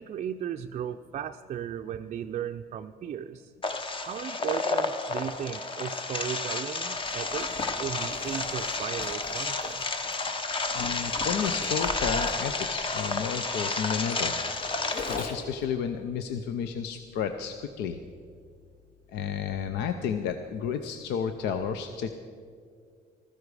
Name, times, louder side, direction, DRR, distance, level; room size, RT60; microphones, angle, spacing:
voice 1, 0.0-3.5 4.0-9.9, right 9 dB, 40° right, 5 dB, 0.4 m, -36 dB
sound 1, 3.6-15.2, left 3 dB, 30° left, 0.9 m, -31 dB
Zipper (clothing), 7.0-15.6, left 3 dB, 55° left, 1.7 m, -42 dB
voice 2, 10.7-14.3 15.2-18.0 19.1-22.2, left 7 dB, 85° left, 8 dB, 0.7 m, -32 dB
14.5 x 13.5 x 4.8 m, 2.2 s
cardioid pair, 110°, 17 cm